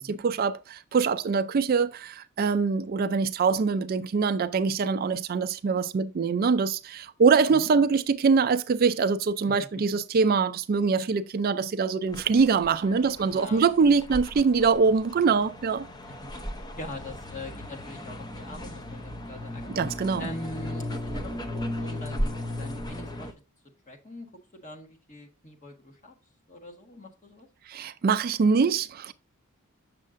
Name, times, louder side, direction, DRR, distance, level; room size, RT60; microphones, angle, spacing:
voice 1, 0.0-15.9 19.8-20.3 27.7-29.1, right 5 dB, 45° right, 0.4 m, -24 dB
sound 1, 12.1-23.3, left 1 dB, 20° left, 0.7 m, -36 dB
voice 2, 12.8-13.6 16.1-16.4 16.8-19.7 20.2-23.3 23.9-24.3 24.5-26.1 26.5-27.5, left 1 dB, 35° left, 1.4 m, -42 dB
7.5 x 6.4 x 2.5 m
head